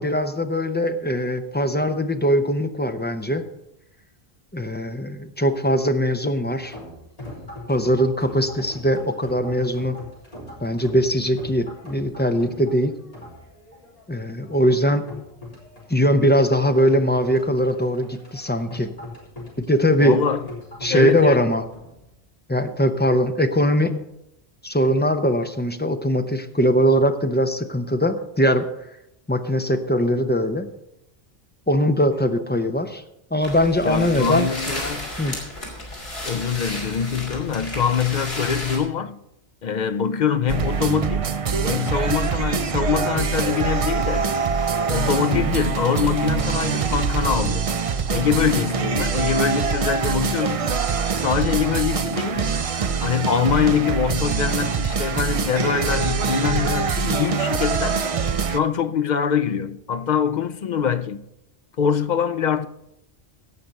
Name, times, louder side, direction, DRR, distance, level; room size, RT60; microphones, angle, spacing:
voice 1, 0.0-3.4 4.5-6.8 7.7-10.0 10.6-12.9 14.1-15.1 15.9-18.9 19.6-20.2 20.8-21.6 22.5-24.0 24.6-28.6 29.3-30.7 31.7-33.0 33.3-34.5 35.2-35.3 45.3-45.5, equal, 10° left, 0.6 m, -21 dB
sound 1, 6.6-22.1, left 1 dB, 35° left, 3.7 m, -41 dB
voice 2, 20.0-20.5 20.9-21.4 33.8-35.1 36.2-39.2 39.6-41.3 41.6-44.3 44.9-47.7 48.0-50.7 51.1-52.6 53.0-58.1 58.5-61.2 61.8-62.7, left 7 dB, 55° left, 0.6 m, -24 dB
sound 2, 33.4-38.8, left 1 dB, 70° left, 3.2 m, -33 dB
sound 3, 40.5-58.6, right 5 dB, 45° right, 0.5 m, -24 dB
16.5 x 5.9 x 5.3 m
omnidirectional pair, 1.1 m